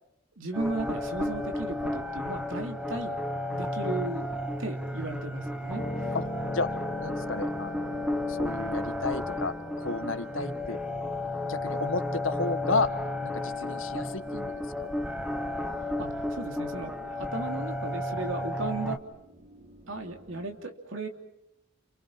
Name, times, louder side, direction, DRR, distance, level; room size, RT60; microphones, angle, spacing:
voice 1, 0.4-3.2 3.5-4.3 4.6-5.8 16.0-19.0 19.9-21.1, right 2 dB, 75° right, 4 dB, 3.1 m, -35 dB
sound 1, 0.5-19.0, left 1 dB, 5° right, 1.3 m, -33 dB
sound 2, 0.7-20.5, right 1 dB, 30° right, 3.6 m, -53 dB
sound 3, 5.7-15.9, left 1 dB, 35° left, 2.6 m, -43 dB
voice 2, 7.0-8.0 8.3-10.8 11.4-12.9 13.2-14.5 14.8-15.0, left 3 dB, 80° left, 9 dB, 1.7 m, -32 dB
29.5 x 29.0 x 5.9 m, 0.82 s
head